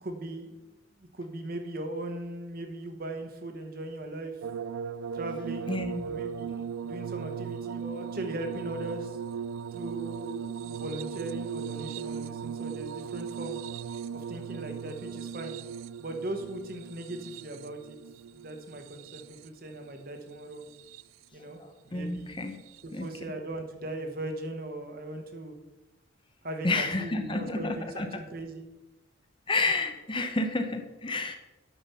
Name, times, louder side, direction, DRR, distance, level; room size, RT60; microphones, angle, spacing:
voice 1, 0.0-0.5 1.0-4.4 5.1-9.2 9.7-13.6 14.1-15.6 16.0-18.0 18.3-20.6 21.3-21.6 21.8-22.4 22.8-25.5 26.4-28.6, right 1 dB, 45° right, 5 dB, 1.1 m, -39 dB
sound 1, 4.4-19.7 20.5-21.2 22.7-22.8, right 7 dB, 85° right, 0.3 m, -38 dB
voice 2, 5.7-6.0 21.4-22.6 22.9-23.1 26.6-28.1 29.5-31.4, left 2 dB, 25° left, 6 dB, 0.7 m, -30 dB
9.2 x 5.8 x 5.6 m, 1.0 s
head